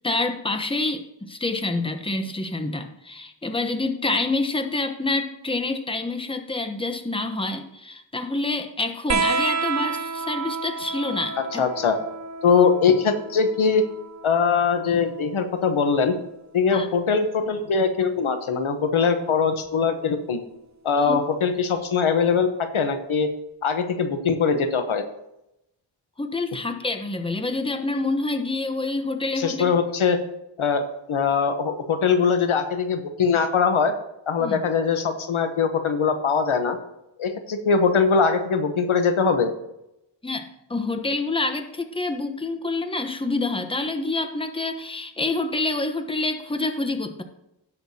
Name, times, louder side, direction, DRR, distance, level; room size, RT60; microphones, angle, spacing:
voice 1, 0.0-11.6 12.5-12.7 16.7-16.9 21.0-21.2 26.2-29.7 34.4-34.6 40.2-47.2, left 2 dB, 10° left, 7 dB, 0.9 m, -27 dB
sound 1, 9.1-16.2 17.5-18.4 19.7-19.8, right 4 dB, 35° right, 0.7 m, -31 dB
voice 2, 11.6-11.9 12.4-13.8 14.2-16.1 16.5-20.4 20.8-23.3 23.6-25.0 29.3-30.2 30.6-30.8 31.1-33.9 34.3-36.8 37.2-39.5, left 5 dB, 85° left, 8 dB, 1.1 m, -21 dB
16.5 x 6.6 x 2.8 m, 0.86 s
wide cardioid pair, 80°, 47 cm